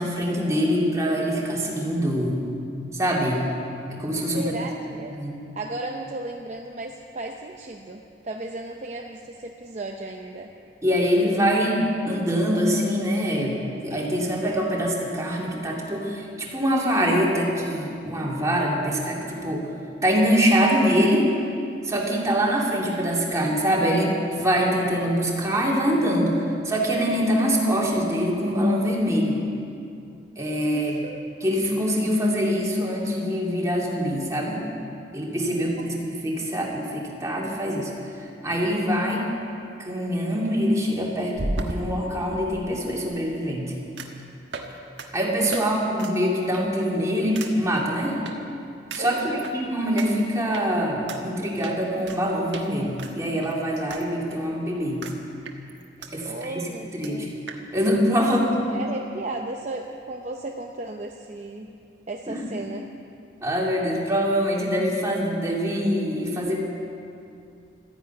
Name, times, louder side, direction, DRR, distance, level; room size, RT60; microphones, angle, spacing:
voice 1, 0.0-2.5 2.9-3.5 3.9-4.5 5.1-5.4 10.8-19.7 20.0-21.3 21.8-26.4 26.6-29.4 30.4-31.0 31.4-34.6 35.1-37.9 38.4-39.3 39.8-43.7 45.1-48.2 48.9-55.1 56.1-56.7 56.9-57.3 57.7-58.7 62.3-62.5 63.4-66.6, equal, 20° right, -3 dB, 2.6 m, -24 dB
voice 2, 4.3-5.2 5.6-10.5 11.7-11.8 30.7-31.3 35.5-35.9 45.5-45.7 49.0-49.4 56.2-57.3 58.2-58.4 58.7-61.7 62.1-62.9, right 2 dB, 40° right, 2 dB, 0.7 m, -35 dB
sound 1, 41.3-42.7 44.0-44.2 44.5-44.7 45.0-45.1 45.5-45.6 46.0-46.1 46.5-46.8 47.4-47.5 48.3-48.4 48.9-49.5 50.0-50.1 50.5-50.6 51.1-51.2 51.6-52.2 52.5-52.7 53.0-54.0 54.3-54.4 55.0-55.2 55.5-56.1 56.4-56.5 56.7-56.8 57.0-57.1 57.5-57.6, right 2 dB, 85° right, 1.4 m, -34 dB
14.0 x 10.5 x 9.1 m, 2.5 s
head